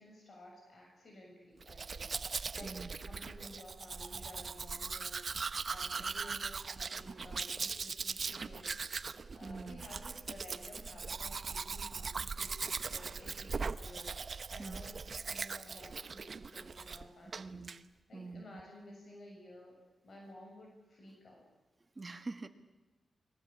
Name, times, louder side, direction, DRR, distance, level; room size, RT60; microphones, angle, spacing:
voice 1, 0.0-2.7 3.0-8.7 9.3-15.0 15.3-17.6 18.1-19.8 20.0-21.4, left 1 dB, 55° left, 0 dB, 6.9 m, -54 dB
Domestic sounds home sounds, 1.6-17.0 17.3-17.8, right 5 dB, 50° right, 0.9 m, -40 dB
voice 2, 9.4-9.8 14.6-14.8 17.4-17.7 18.1-18.6 22.0-22.5, right 3 dB, 30° right, 8 dB, 2.0 m, -45 dB
30.0 x 21.5 x 8.7 m, 1.1 s
wide cardioid pair, 100°, 0 cm